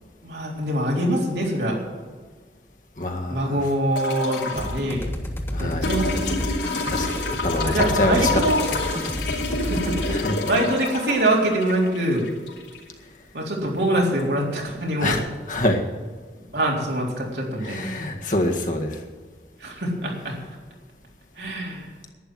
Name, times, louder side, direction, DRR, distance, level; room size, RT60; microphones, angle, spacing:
voice 1, 0.2-1.8 3.3-5.1 5.6-6.3 7.6-8.6 9.6-10.1 10.4-12.3 13.3-15.2 16.5-17.9 19.6-20.4 21.4-21.8, right 1 dB, 75° right, -2 dB, 3.8 m, -24 dB
voice 2, 3.0-3.6 5.5-5.9 6.9-7.1 7.4-8.3 10.1-10.4 15.0-15.8 17.6-19.0, left 1 dB, 45° left, 1 dB, 1.8 m, -25 dB
sound 1, 4.0-4.8 5.8-12.8 14.2-14.3, left 3 dB, 80° left, 3.3 m, -28 dB
sound 2, 4.6-10.2, equal, 15° left, 1.3 m, -30 dB
11.5 x 10.5 x 7.8 m, 1.5 s
head